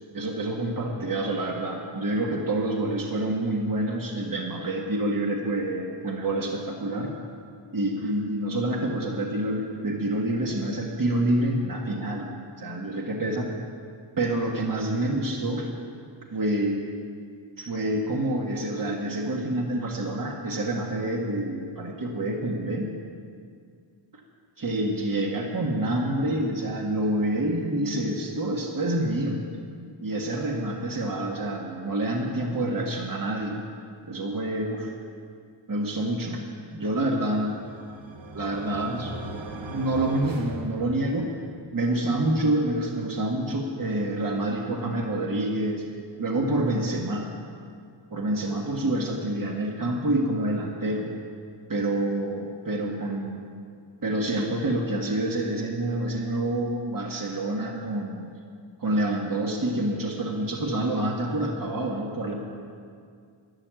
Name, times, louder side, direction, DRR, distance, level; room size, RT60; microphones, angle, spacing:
voice 1, 0.1-7.1 7.7-12.3 12.6-13.5 14.2-15.7 16.3-16.8 17.6-22.9 24.6-29.5 30.0-33.6 34.1-34.9 35.7-36.4 36.7-37.6 38.3-39.1 39.7-41.3 41.7-45.8 46.2-47.3 48.1-51.1 51.7-53.5 54.0-58.3 58.8-62.3, right 1 dB, 40° right, 0 dB, 1.6 m, -27 dB
sound 1, 37.1-41.4, right 2 dB, 65° right, 1.3 m, -39 dB
12.0 x 11.0 x 7.6 m, 2.2 s
wide cardioid pair, 100°, 49 cm